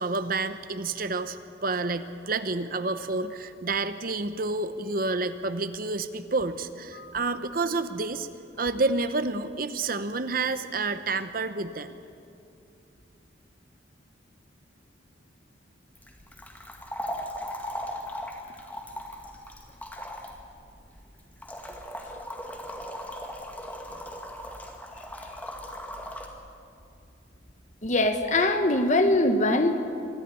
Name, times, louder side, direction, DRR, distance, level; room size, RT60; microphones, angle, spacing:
voice 1, 0.0-1.4 1.6-8.3 8.6-11.9, right 3 dB, 45° right, 11 dB, 0.8 m, -29 dB
sound 1, 15.9-26.3, left 1 dB, 10° left, 1.9 m, -38 dB
voice 2, 27.8-29.8, left 1 dB, 40° left, 7 dB, 1.5 m, -22 dB
25.0 x 13.5 x 9.8 m, 2.6 s
head